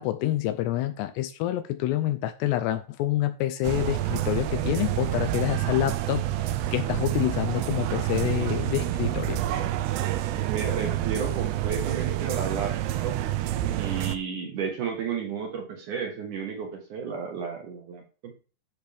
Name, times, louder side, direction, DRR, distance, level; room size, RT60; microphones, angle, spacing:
voice 1, 0.0-9.4, left 14 dB, 85° left, 2.5 m, -27 dB
sound 1, 3.6-14.2, right 13 dB, 85° right, 2.4 m, -28 dB
voice 2, 10.5-12.8 13.0-13.2 13.7-18.3, right 6 dB, 65° right, 2.1 m, -33 dB
13.0 x 6.1 x 3.5 m
omnidirectional pair, 5.4 m